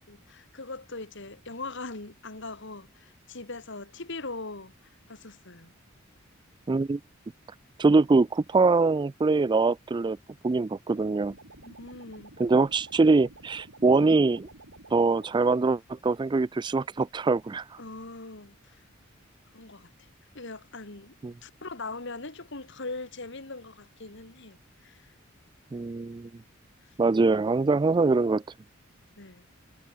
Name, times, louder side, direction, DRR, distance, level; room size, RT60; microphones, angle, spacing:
voice 1, 0.1-5.7 11.6-12.3 17.8-18.8 19.5-19.9 20.3-21.1 21.4-25.1 29.2-29.4, left 3 dB, 60° left, 2.6 m, -41 dB
voice 2, 6.7-7.0 7.8-10.2 10.4-11.3 12.4-14.5 14.9-17.6 21.2-21.3 25.7-26.3 27.0-28.4, right 3 dB, 20° right, 0.3 m, -23 dB
sound 1, 10.9-15.3, right 2 dB, 85° right, 8.0 m, -51 dB
head